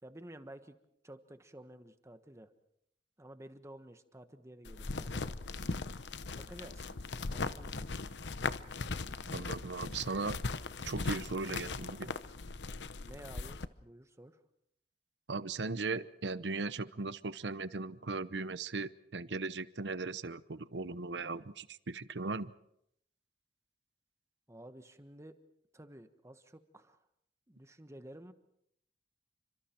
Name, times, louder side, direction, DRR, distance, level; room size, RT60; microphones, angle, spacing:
voice 1, 0.0-0.8 1.0-2.5 3.2-5.3 6.4-6.9 7.3-8.4 13.0-14.4 24.5-25.4 25.7-27.0 27.5-28.3, right 1 dB, 15° right, 9 dB, 1.4 m, -52 dB
sound 1, 4.7-13.7, left 3 dB, 85° left, 0.9 m, -39 dB
voice 2, 9.3-10.4 10.8-12.1 15.3-22.5, right 3 dB, 85° right, 15 dB, 0.9 m, -38 dB
29.5 x 25.5 x 4.6 m, 0.74 s
head